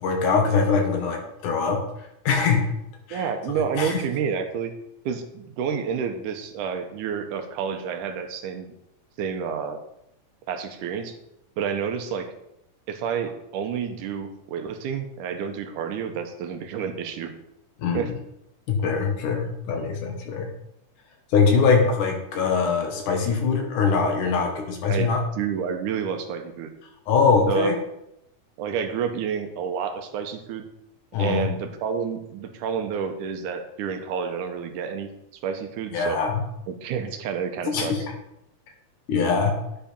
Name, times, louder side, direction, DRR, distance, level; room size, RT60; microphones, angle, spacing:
voice 1, 0.0-1.8 2.3-2.7 3.1-3.2 3.8-4.0 17.8-18.2 18.7-20.5 21.3-25.2 27.1-27.8 31.1-31.5 35.9-36.4 37.7-38.0 39.1-39.6, left 5 dB, 70° left, 2 dB, 2.8 m, -22 dB
voice 2, 3.1-4.7 5.1-8.7 9.2-9.8 10.5-11.2 11.6-12.3 12.9-17.3 17.9-18.1 21.8-21.9 24.9-26.7 27.5-27.7 28.6-30.6 31.2-35.1 35.4-36.2 36.7-38.1, right 7 dB, 75° right, 6 dB, 2.2 m, -29 dB
10.0 x 4.8 x 5.2 m, 0.82 s
omnidirectional pair, 3.8 m